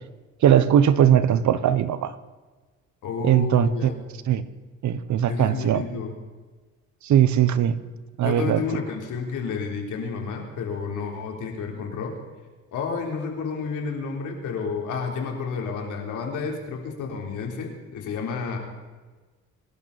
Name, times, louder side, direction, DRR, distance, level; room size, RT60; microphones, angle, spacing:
voice 1, 0.4-2.1 3.2-3.9 4.3-4.4 4.8-5.8 7.0-7.8 8.2-8.6, right 10 dB, 70° right, 1.1 m, -19 dB
voice 2, 3.0-4.0 5.3-6.1 8.2-12.1 12.7-18.6, left 5 dB, 85° left, 3.6 m, -30 dB
26.0 x 12.5 x 4.2 m
cardioid pair, 90°, 30 cm